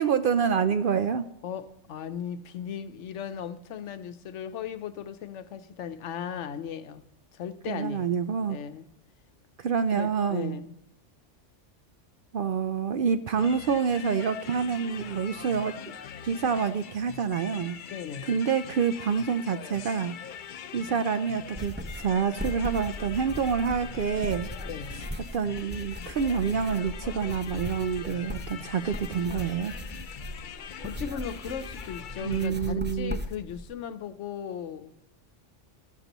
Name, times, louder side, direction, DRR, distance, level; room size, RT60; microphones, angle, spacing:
voice 1, 0.0-1.3 7.7-8.6 9.6-10.6 12.3-15.8 16.2-17.8 18.3-20.2 20.7-24.5 25.3-29.7 32.2-33.2, right 6 dB, 60° right, 0.6 m, -27 dB
voice 2, 1.4-7.0 7.3-8.2 8.5-8.9 9.9-10.7 17.9-18.4 24.6-25.1 30.8-34.9, left 8 dB, 75° left, 1.0 m, -37 dB
sound 1, 13.4-32.5, left 8 dB, 55° left, 0.6 m, -43 dB
sound 2, 21.6-33.6, equal, 15° right, 0.5 m, -38 dB
14.0 x 12.0 x 3.0 m
omnidirectional pair, 1.2 m